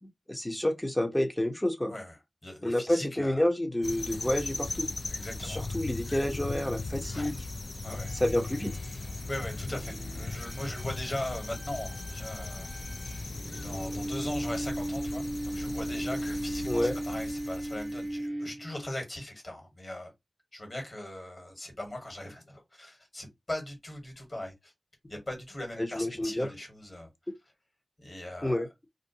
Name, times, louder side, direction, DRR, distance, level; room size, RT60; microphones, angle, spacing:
voice 1, 0.0-1.9 2.6-4.9 5.4-7.3 8.2-8.7 16.7-17.0 25.8-26.5 28.4-28.7, left 1 dB, 20° left, 0.8 m, -29 dB
voice 2, 2.4-3.5 5.1-5.7 7.1-7.3 7.8-8.1 8.9-12.7 13.0-13.2 13.5-20.1 20.5-24.7 25.1-27.1 28.0-28.6, left 1 dB, 45° left, 1.5 m, -40 dB
sound 1, 3.8-18.2, left 3 dB, 60° left, 0.3 m, -38 dB
sound 2, 7.9-19.0, right 1 dB, 30° right, 0.6 m, -38 dB
2.5 x 2.2 x 2.7 m
cardioid pair, 50°, 0 cm